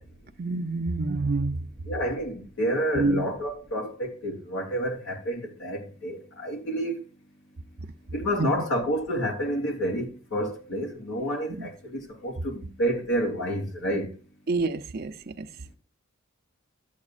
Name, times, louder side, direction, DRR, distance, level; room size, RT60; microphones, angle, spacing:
voice 1, 0.4-1.7 2.9-3.3 8.4-8.5 11.5-11.7 14.5-15.5, right 3 dB, 45° right, 0.6 m, -27 dB
voice 2, 1.8-7.0 8.1-14.1, equal, 55° left, 3.0 m, -29 dB
12.5 x 8.3 x 2.5 m
head